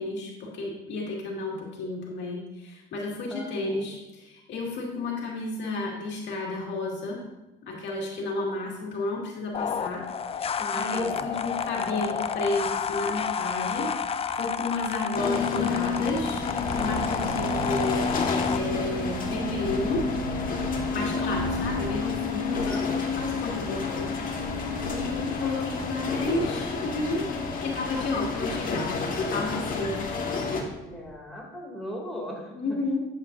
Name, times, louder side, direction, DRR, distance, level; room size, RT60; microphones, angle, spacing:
voice 1, 0.0-7.2 7.6-10.0 10.3-13.9 14.3-16.4 16.7-20.0 20.9-27.3 27.6-29.0 29.3-30.0 32.5-33.0, left 2 dB, 75° left, -2 dB, 2.1 m, -32 dB
voice 2, 3.3-3.9 10.6-11.2 22.6-23.2 30.1-32.8, equal, ahead, -3 dB, 2.6 m, -39 dB
sound 1, 9.5-18.6, left 7 dB, 30° left, 0.4 m, -30 dB
sound 2, 12.6-15.4 15.7-15.8 16.3-31.1, right 3 dB, 80° right, 1.4 m, -40 dB
sound 3, 15.1-30.6, left 4 dB, 50° left, 1.5 m, -30 dB
11.0 x 8.0 x 2.6 m, 0.98 s
cardioid pair, 105°, 19 cm